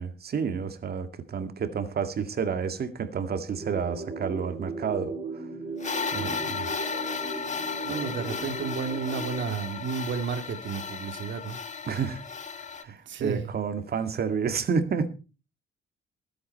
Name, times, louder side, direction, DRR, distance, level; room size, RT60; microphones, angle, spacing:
voice 1, 0.0-5.5 6.1-6.7 11.9-12.2 12.8-15.1, right 6 dB, 50° right, 2.0 m, -30 dB
sound 1, 3.5-9.5, right 3 dB, 35° right, 4.8 m, -37 dB
sound 2, 5.8-12.8, left 5 dB, 35° left, 1.8 m, -34 dB
voice 2, 7.8-11.6 13.1-13.5, right 6 dB, 70° right, 2.4 m, -32 dB
20.0 x 8.6 x 4.5 m
cardioid pair, 90°, 20 cm